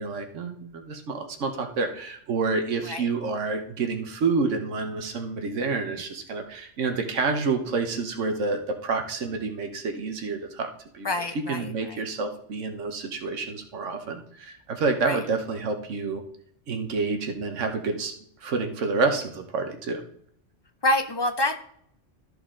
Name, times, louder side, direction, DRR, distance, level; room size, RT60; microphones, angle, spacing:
voice 1, 0.0-11.1 11.3-16.2 16.7-18.1 18.4-20.0, right 4 dB, 90° right, 5 dB, 1.3 m, -28 dB
voice 2, 11.0-12.0 15.1-15.2 20.8-21.6, left 1 dB, 30° left, 7 dB, 0.4 m, -26 dB
13.0 x 4.8 x 3.7 m, 0.66 s
omnidirectional pair, 1.2 m